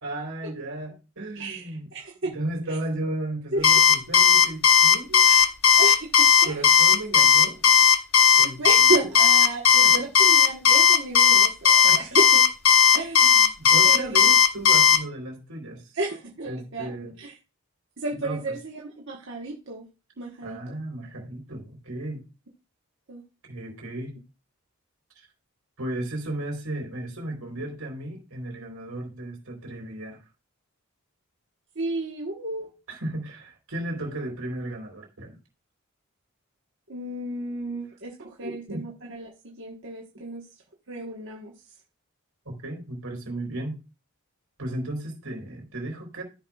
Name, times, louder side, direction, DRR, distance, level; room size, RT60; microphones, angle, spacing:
voice 1, 0.0-1.8 2.3-5.2 6.4-7.6 8.3-9.1 9.8-10.1 11.8-12.1 13.3-15.8 16.5-17.1 18.2-18.4 20.4-22.2 23.5-24.2 25.2-25.3 25.8-30.2 32.9-35.3 38.4-38.8 42.5-43.8 44.6-46.2, right 1 dB, 85° right, 0 dB, 3.7 m, -34 dB
voice 2, 1.3-2.4 2.7-2.8 3.5-3.8 5.2-6.6 8.4-12.5 12.9-13.4 13.8-14.3 15.9-17.4 18.0-19.9 20.2-20.8 23.1-23.2 31.7-32.7 36.9-40.5 40.9-41.6, right 2 dB, 60° right, -2 dB, 1.3 m, -33 dB
Alarm, 3.6-15.0, left 7 dB, 70° left, 1.0 m, -16 dB
14.5 x 5.7 x 2.4 m, 0.29 s
head